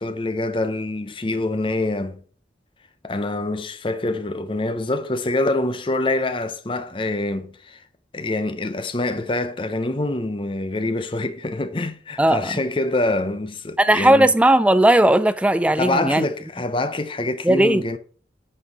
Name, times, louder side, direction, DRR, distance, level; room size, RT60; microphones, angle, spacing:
voice 1, 0.0-2.2 3.0-7.8 8.1-14.3 15.8-18.0, left 2 dB, 30° left, 0.7 m, -25 dB
voice 2, 12.2-12.5 13.8-16.3 17.4-17.8, right 1 dB, 5° right, 0.4 m, -16 dB
8.9 x 4.6 x 4.6 m
head